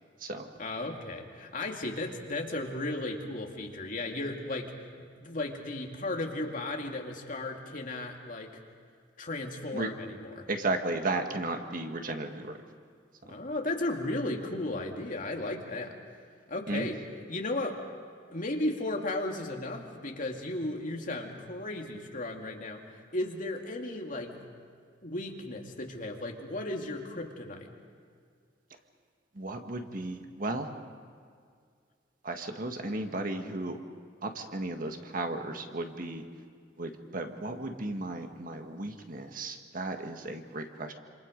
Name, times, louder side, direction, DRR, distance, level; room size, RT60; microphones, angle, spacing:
voice 1, 0.6-4.7 5.0-8.5 9.2-10.5 13.2-15.9 16.5-17.0 17.3-17.8 18.3-22.8 23.1-24.4 25.0-27.7, left 2 dB, 45° left, 1 dB, 2.5 m, -35 dB
voice 2, 10.5-12.6 13.3-13.4 16.7-16.9 29.3-30.7 32.2-33.8 34.2-36.2 36.8-40.9, right 2 dB, 50° right, 5 dB, 1.7 m, -34 dB
27.5 x 27.0 x 5.2 m, 2.1 s
head